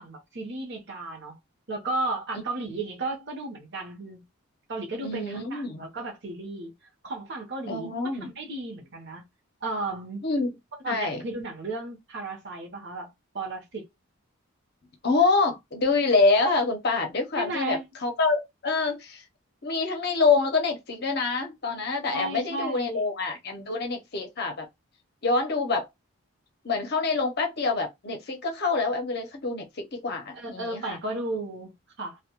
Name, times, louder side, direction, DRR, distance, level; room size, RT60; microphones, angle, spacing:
voice 1, 0.0-1.4 1.7-4.2 4.7-6.7 7.0-9.2 9.6-10.2 10.8-13.9 17.4-17.9 22.1-23.0 30.3-32.2, right 2 dB, 55° right, 0.7 m, -34 dB
voice 2, 5.0-5.9 7.7-8.3 10.2-10.5 10.9-11.2 15.0-19.2 19.6-24.7 25.2-25.9 26.6-29.7 29.9-31.0, left 3 dB, 50° left, 0.6 m, -26 dB
2.1 x 2.1 x 2.9 m
head